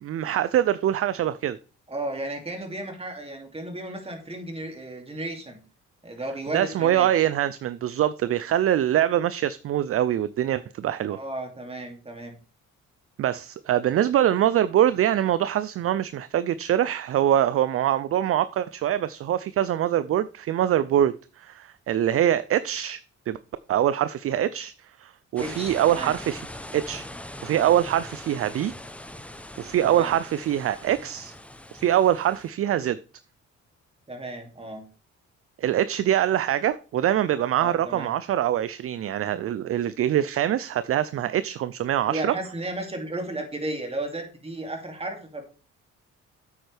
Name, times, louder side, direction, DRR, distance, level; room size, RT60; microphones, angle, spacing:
voice 1, 0.0-1.6 6.5-11.2 13.2-23.0 23.3-23.4 23.7-24.7 25.0-26.4 26.7-27.1 27.4-28.7 29.6-31.3 31.7-33.0 35.6-42.3, right 11 dB, 50° right, 0.4 m, -24 dB
voice 2, 1.9-5.6 6.0-7.1 11.1-12.4 25.4-26.1 29.8-30.1 34.1-34.8 37.5-38.1 42.0-45.4, right 1 dB, 20° right, 2.6 m, -34 dB
sound 1, 25.4-32.5, left 1 dB, 5° left, 0.7 m, -41 dB
8.7 x 7.9 x 3.4 m
cardioid pair, 90°, 30 cm